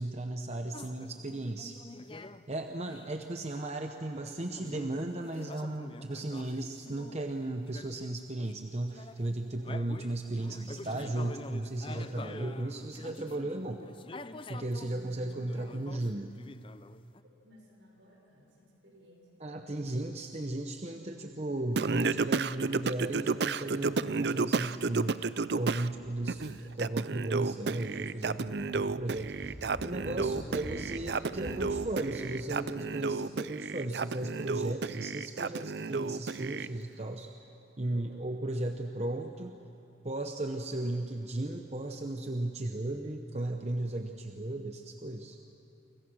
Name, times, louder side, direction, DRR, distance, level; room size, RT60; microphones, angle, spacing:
voice 1, 0.0-1.8 2.5-13.8 14.5-16.3 19.4-25.3 25.6-29.6 29.8-37.3 37.8-39.5 40.0-45.4, right 1 dB, 35° right, 5 dB, 0.9 m, -35 dB
sound 1, 0.7-2.5 2.9-3.2 4.2-7.2 7.7-8.7 8.9-14.9 15.2-17.2, left 2 dB, 25° left, 0.6 m, -47 dB
voice 2, 17.4-19.7 37.8-38.2 45.2-45.5, equal, 75° right, 0 dB, 6.3 m, -58 dB
Singing, 21.8-25.9 26.3-36.7, right 4 dB, 55° right, 0.5 m, -32 dB
sound 2, 25.5-26.9 27.2-27.3 27.9-32.6, equal, ahead, 4.5 m, -46 dB
29.5 x 25.5 x 6.3 m, 2.7 s
head